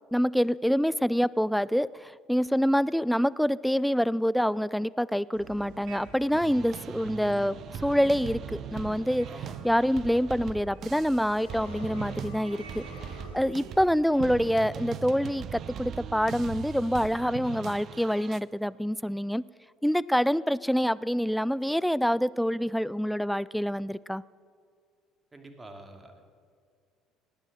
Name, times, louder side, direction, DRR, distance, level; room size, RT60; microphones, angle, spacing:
voice 1, 0.1-9.3 9.6-12.8 13.3-19.4 19.8-24.2, equal, ahead, 20 dB, 0.3 m, -26 dB
sound 1, 5.3-13.8, right 4 dB, 65° right, 2.1 m, -49 dB
sound 2, 6.3-18.4, right 8 dB, 50° right, 0.7 m, -40 dB
voice 2, 9.3-9.6 25.3-26.2, right 2 dB, 20° right, 5 dB, 2.5 m, -47 dB
sound 3, 11.3-13.5, left 3 dB, 80° left, 1.9 m, -47 dB
19.0 x 10.5 x 6.6 m, 2.2 s
figure-of-eight pair, 60°, 0 cm